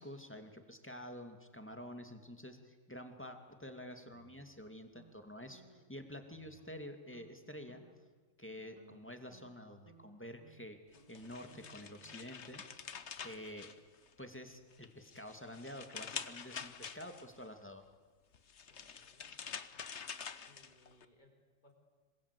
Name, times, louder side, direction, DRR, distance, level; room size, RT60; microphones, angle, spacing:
voice 1, 0.0-7.8 8.4-12.9 13.2-13.7 14.2-17.8, equal, 10° left, 5 dB, 2.5 m, -49 dB
sound 1, 4.1-5.2 5.5-5.9 6.3-6.9 7.1-7.3 7.7-8.1 8.5-12.9, right 3 dB, 30° right, 3.0 m, -64 dB
sound 2, 10.9-14.3 14.7-17.4 18.3-21.1, left 6 dB, 60° left, 1.4 m, -47 dB
voice 2, 18.7-19.4 20.4-21.7, left 1 dB, 35° left, 3 dB, 5.0 m, -67 dB
26.5 x 25.5 x 8.5 m, 1.4 s
omnidirectional pair, 1.3 m